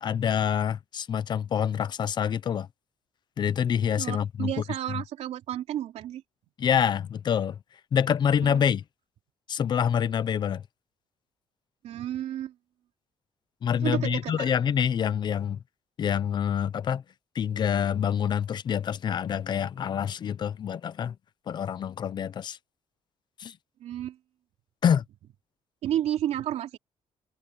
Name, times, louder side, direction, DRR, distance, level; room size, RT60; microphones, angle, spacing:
voice 1, 0.0-2.7 3.4-5.0 6.6-7.6 7.9-8.8 9.5-10.6 13.6-15.6 16.0-17.0 17.3-21.2 21.5-22.6 23.4-23.6 24.8-25.0, left 8 dB, 40° left, 0.7 m, -26 dB
voice 2, 4.0-6.2 8.4-8.6 11.8-12.5 13.8-14.5 23.8-24.2 25.8-26.8, right 11 dB, 75° right, 3.3 m, -31 dB
cardioid pair, 160°, 11 cm